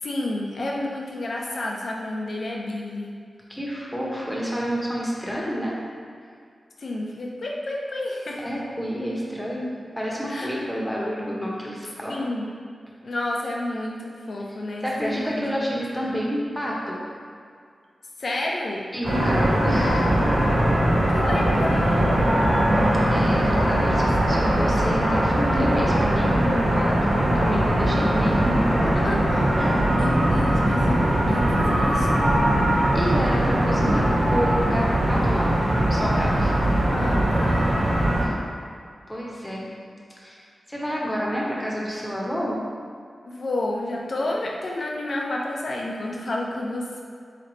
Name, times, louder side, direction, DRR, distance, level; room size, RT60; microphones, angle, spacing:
voice 1, 0.0-3.1 6.8-8.5 10.3-10.6 12.1-12.5 13.0-16.2 18.2-18.8 21.1-22.6 24.0-24.3 28.9-29.4 29.9-32.2 35.3-35.4 36.9-37.7 43.3-47.0, left 1 dB, 60° left, -2 dB, 0.7 m, -30 dB
voice 2, 3.5-5.8 8.4-12.2 14.8-17.0 18.9-20.3 23.1-29.1 29.6-29.8 32.9-35.5 35.9-36.5 38.2-38.3 39.1-39.7 40.2-40.4 40.7-42.6, equal, 10° left, -5 dB, 1.0 m, -29 dB
sound 1, 19.0-38.2, right 1 dB, 55° right, 1.3 m, -21 dB
4.0 x 3.3 x 4.0 m, 2.2 s
cardioid pair, 70°, 0 cm